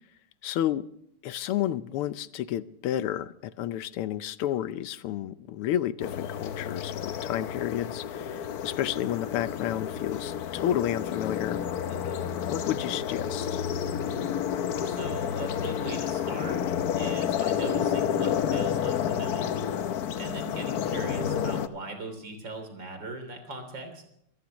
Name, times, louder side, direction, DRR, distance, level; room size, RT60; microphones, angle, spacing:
voice 1, 0.4-0.9 1.2-11.6 12.3-13.6, left 11 dB, 85° left, 14 dB, 1.7 m, -31 dB
sound 1, 6.0-21.7, left 8 dB, 60° left, 1.0 m, -30 dB
voice 2, 11.9-12.3 14.8-16.6 16.9-19.6 20.2-24.0, right 2 dB, 60° right, 6 dB, 4.0 m, -39 dB
26.0 x 15.0 x 3.0 m, 0.73 s
omnidirectional pair, 2.4 m